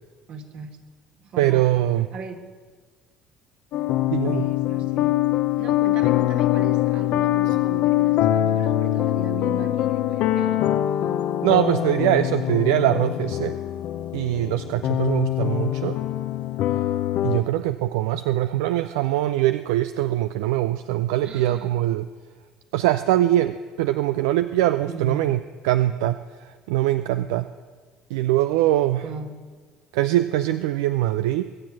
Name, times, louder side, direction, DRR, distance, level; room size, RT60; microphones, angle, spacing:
voice 1, 0.3-0.7 1.2-1.7 2.1-2.4 4.2-5.1 5.6-10.8 17.4-17.6 21.2-21.7 24.9-25.4 29.0-29.3, right 5 dB, 60° right, 5 dB, 1.9 m, -38 dB
voice 2, 1.4-2.1 4.1-4.5 11.4-13.6 14.1-16.0 17.2-22.1 22.7-27.5 28.1-29.1 29.9-31.5, right 14 dB, 80° right, 12 dB, 0.4 m, -22 dB
sound 1, 3.7-17.4, left 13 dB, 65° left, 0.7 m, -23 dB
22.0 x 7.8 x 7.6 m, 1.5 s
hypercardioid pair, 65°, 2 cm